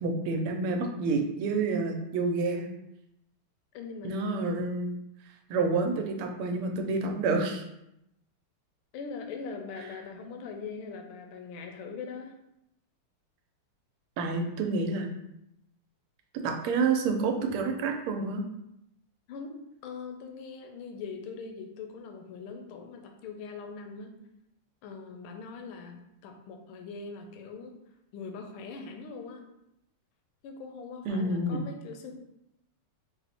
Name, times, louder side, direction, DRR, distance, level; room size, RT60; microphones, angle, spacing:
voice 1, 0.0-2.7 4.0-4.9 5.5-7.6 14.2-15.1 16.4-18.4 31.1-31.7, right 3 dB, 85° right, 4 dB, 1.5 m, -28 dB
voice 2, 3.7-4.7 8.9-12.3 19.3-24.1 24.8-27.7 28.1-29.4 30.4-32.1, left 5 dB, 75° left, 4 dB, 1.4 m, -41 dB
4.3 x 2.0 x 4.1 m, 0.82 s
omnidirectional pair, 2.4 m